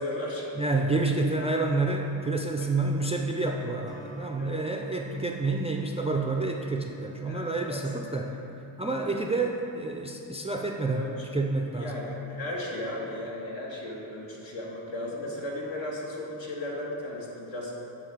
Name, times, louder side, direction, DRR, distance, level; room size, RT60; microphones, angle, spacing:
voice 1, 0.0-0.5 4.4-4.6 7.3-7.8 8.1-8.3 8.9-9.0 10.9-11.1 11.7-17.7, left 1 dB, 65° left, -4 dB, 1.6 m, -35 dB
voice 2, 0.6-8.4 8.8-11.1 11.3-11.9, right 3 dB, 15° right, 1 dB, 0.3 m, -28 dB
Acoustic guitar, 3.9-8.3, equal, 50° left, 1.2 m, -53 dB
7.7 x 4.0 x 4.6 m, 2.9 s
cardioid pair, 55°, 48 cm